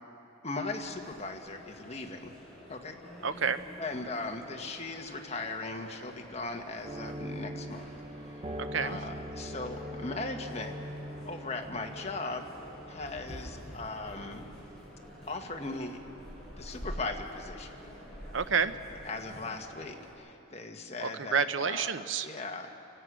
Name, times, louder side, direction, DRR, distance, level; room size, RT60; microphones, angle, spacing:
voice 1, 0.4-2.3 2.7-3.0 3.8-7.9 8.3-10.8 11.2-12.4 12.9-14.4 15.3-16.0 16.6-17.8 19.0-21.9 22.2-22.8, left 3 dB, 30° left, 3 dB, 1.6 m, -38 dB
sound 1, 0.7-20.1, equal, 5° left, 7.3 m, -48 dB
voice 2, 3.2-3.6 8.6-9.0 18.3-18.7 21.0-22.3, right 6 dB, 65° right, 11 dB, 0.8 m, -29 dB
sound 2, 6.8-17.3 17.7-17.8 18.3-18.5, equal, 30° right, 0.9 m, -44 dB
29.0 x 16.5 x 6.3 m, 2.9 s
head